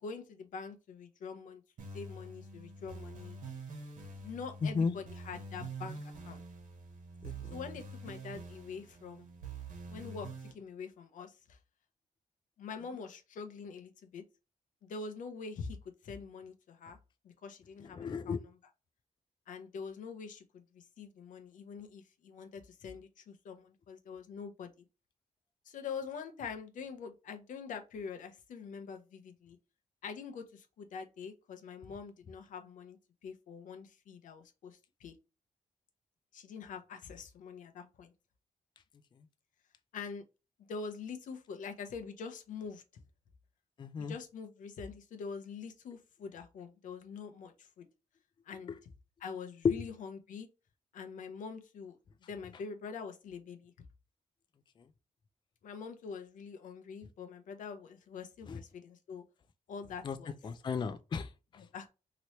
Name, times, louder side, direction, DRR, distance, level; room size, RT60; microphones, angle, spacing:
voice 1, 0.0-1.6 1.9-3.4 4.2-6.4 7.5-9.3 9.9-11.6 12.6-14.2 14.8-15.8 16.0-17.0 17.2-18.3 19.5-24.9 25.7-29.6 30.0-35.1 36.3-38.1 39.9-40.2 40.6-42.8 44.0-47.9 48.5-48.7 49.2-50.5 50.9-52.0 52.3-53.7 55.6-59.2 59.7-60.4 61.6-61.9, left 5 dB, 90° left, 0.7 m, -45 dB
sound 1, 1.8-10.5, right 3 dB, 85° right, 1.2 m, -46 dB
voice 2, 4.6-4.9 7.2-7.5 17.8-18.4 43.8-44.1 49.6-49.8 58.5-58.6 60.0-60.2 60.4-61.6, left 5 dB, 35° left, 0.3 m, -33 dB
2.9 x 2.9 x 3.0 m
cardioid pair, 105°, 13 cm